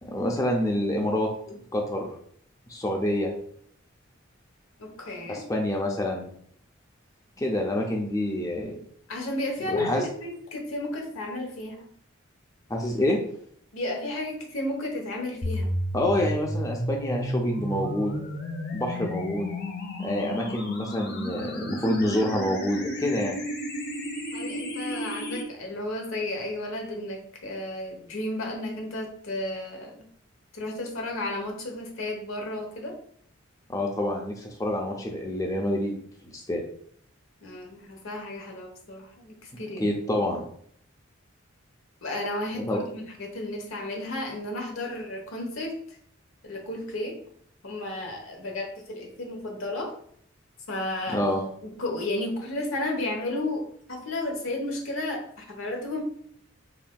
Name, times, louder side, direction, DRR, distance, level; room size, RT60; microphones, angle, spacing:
voice 1, 0.0-2.1 2.7-3.3 5.3-6.3 7.4-8.8 9.7-10.0 12.7-13.2 15.9-18.2 18.7-19.5 20.0-23.4 33.7-36.6 39.7-40.4 42.7-42.8 51.1-51.4, left 1 dB, 15° left, 0 dB, 0.5 m, -27 dB
voice 2, 4.8-5.4 9.1-11.9 13.7-15.7 24.3-29.9 30.5-33.0 37.4-39.9 42.0-45.8 46.4-47.2 47.6-49.9 50.7-51.2 51.6-56.0, left 1 dB, 75° left, 1 dB, 1.0 m, -33 dB
sound 1, 15.4-25.4, equal, 55° left, 0.9 m, -32 dB
4.2 x 3.7 x 2.3 m, 0.62 s
head